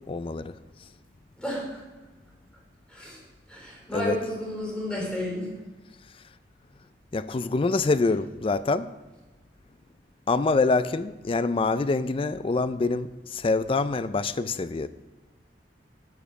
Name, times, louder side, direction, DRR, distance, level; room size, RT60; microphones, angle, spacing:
voice 1, 0.1-0.5 3.9-4.2 7.1-8.9 10.3-14.9, left 3 dB, 30° left, 0.4 m, -25 dB
voice 2, 1.4-1.8 2.9-3.2 3.5-5.5, left 1 dB, 5° left, 3.7 m, -32 dB
12.0 x 6.8 x 6.4 m
head